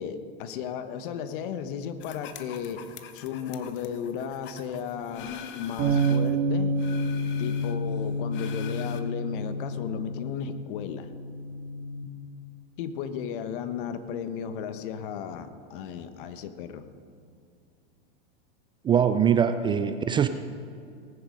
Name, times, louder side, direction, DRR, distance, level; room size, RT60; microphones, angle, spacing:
voice 1, 0.0-2.9 3.1-6.7 7.4-11.1 12.8-16.8, left 8 dB, 60° left, 10 dB, 1.2 m, -34 dB
sound 1, 2.0-6.4 6.7-9.0, left 8 dB, 40° left, 1.1 m, -44 dB
sound 2, 5.8-12.0, right 1 dB, 40° right, 2.5 m, -29 dB
voice 2, 18.8-20.3, right 8 dB, 15° right, 10 dB, 0.4 m, -22 dB
19.0 x 9.7 x 5.3 m, 2.3 s
hypercardioid pair, 120°, 30 cm